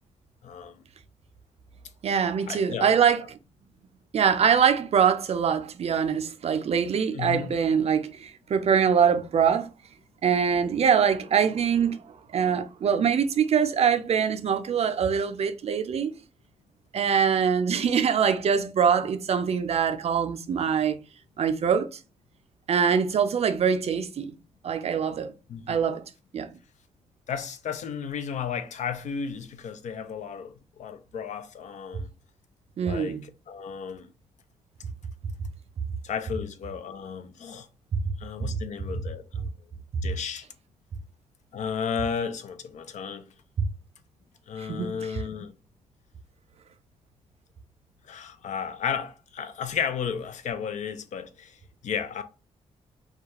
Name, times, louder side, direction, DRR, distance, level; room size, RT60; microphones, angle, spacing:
voice 1, 0.4-0.8 2.5-3.3 7.1-7.5 25.5-25.8 27.3-32.1 32.8-34.1 36.0-37.7 38.2-39.5 40.0-40.5 41.5-43.3 44.5-45.5 48.1-52.2, left 7 dB, 70° left, 0.4 m, -33 dB
voice 2, 2.0-3.2 4.1-9.7 10.2-12.0 12.3-16.1 16.9-21.0 21.4-21.9 22.7-24.3 24.6-25.3 25.7-26.0 26.3-26.5 32.8-33.2 43.6-43.7 44.6-45.2, right 7 dB, 55° right, 0.4 m, -23 dB
2.3 x 2.2 x 2.9 m
cardioid pair, 65°, 13 cm